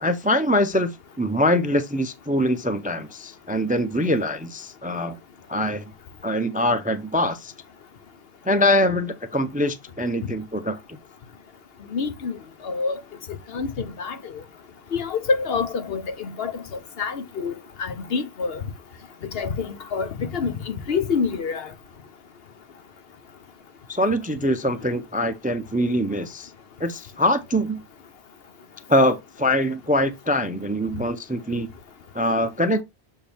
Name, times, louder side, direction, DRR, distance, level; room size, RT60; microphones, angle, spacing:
voice 1, 0.0-5.2 5.5-5.8 6.2-7.5 8.4-11.0 23.9-26.5 26.8-27.8 28.9-31.7 32.1-32.8, left 1 dB, 10° right, 0.5 m, -23 dB
voice 2, 11.9-12.4 12.6-13.0 13.5-14.4 14.9-16.6 17.0-18.6 19.3-21.7, left 5 dB, 65° left, 1.1 m, -27 dB
7.1 x 4.3 x 3.4 m
omnidirectional pair, 1.1 m